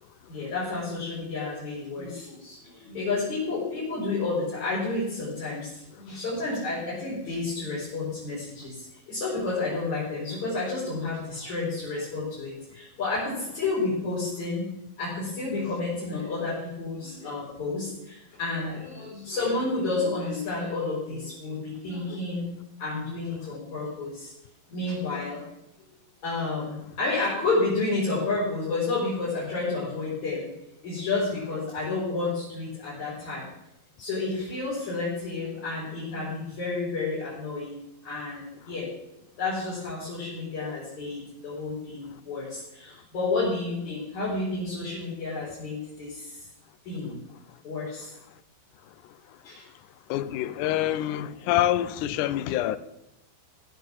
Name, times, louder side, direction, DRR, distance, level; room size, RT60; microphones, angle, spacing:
voice 1, 0.3-14.7 15.0-22.5 22.8-24.3 24.7-25.4 26.2-30.5 30.8-33.5 34.0-37.8 38.0-38.9 39.4-46.4 46.8-47.1 47.6-48.1 49.4-49.7, left 3 dB, 50° left, 6.0 m, -30 dB
voice 2, 49.0-49.4 50.1-52.8, left 13 dB, 80° left, 1.8 m, -27 dB
17.5 x 7.9 x 7.4 m
omnidirectional pair, 4.4 m